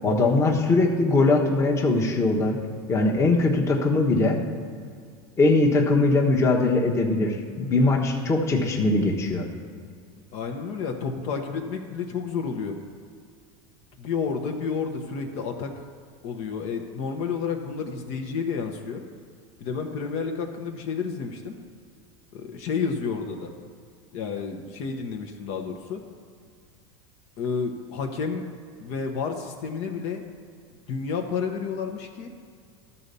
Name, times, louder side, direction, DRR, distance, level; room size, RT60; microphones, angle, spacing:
voice 1, 0.0-2.6 2.9-4.4 5.4-9.4, left 2 dB, 20° left, 0 dB, 1.1 m, -21 dB
voice 2, 10.3-12.8 14.0-15.7 16.2-19.0 19.6-21.6 22.3-23.5 24.1-26.0 27.4-28.4 28.8-30.2 30.9-32.3, left 5 dB, 55° left, 3 dB, 0.9 m, -30 dB
12.5 x 4.1 x 6.8 m, 2.1 s
supercardioid pair, 135°, 13 cm